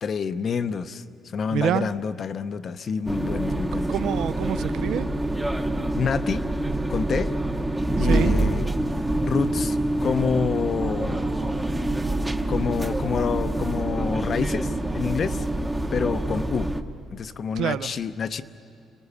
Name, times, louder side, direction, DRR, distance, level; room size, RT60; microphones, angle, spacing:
voice 1, 0.0-1.0 1.3-3.9 5.9-6.4 6.9-7.3 8.0-8.7 9.2-11.3 12.5-15.4 15.9-16.7 17.1-18.4, left 6 dB, 35° left, 12 dB, 0.6 m, -27 dB
voice 2, 1.5-1.9 3.9-5.1 8.0-8.4 17.6-17.9, right 10 dB, 65° right, 16 dB, 0.5 m, -26 dB
sound 1, 3.1-16.8, right 1 dB, 5° right, 0.8 m, -26 dB
27.0 x 19.5 x 8.4 m, 2.7 s
cardioid pair, 165°, 0 cm